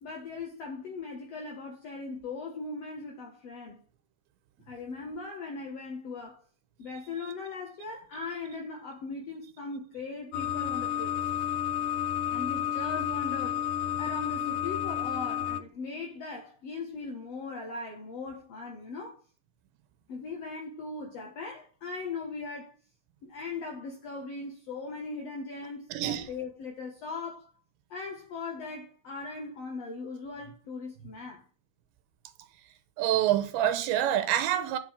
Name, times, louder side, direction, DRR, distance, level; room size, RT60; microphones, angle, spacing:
voice 1, 0.0-3.8 4.7-6.4 6.8-11.1 12.3-13.7 14.0-19.2 20.1-22.7 23.2-27.5 27.9-31.4, left 4 dB, 60° left, 1.7 m, -39 dB
sound 1, 10.3-15.6, left 10 dB, 80° left, 2.6 m, -31 dB
voice 2, 25.9-26.3 33.0-34.8, right 11 dB, 80° right, 3.3 m, -26 dB
9.5 x 7.4 x 6.3 m
omnidirectional pair, 5.1 m